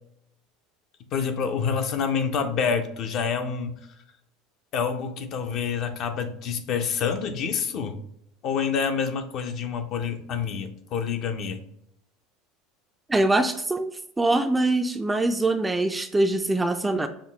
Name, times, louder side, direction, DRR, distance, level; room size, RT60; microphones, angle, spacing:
voice 1, 1.1-3.8 4.7-8.0 8.4-11.6, left 6 dB, 50° left, 7 dB, 0.6 m, -27 dB
voice 2, 13.1-13.9 14.2-17.1, right 2 dB, 10° right, 8 dB, 0.3 m, -23 dB
5.8 x 2.2 x 4.0 m, 0.75 s
supercardioid pair, 115°, 0 cm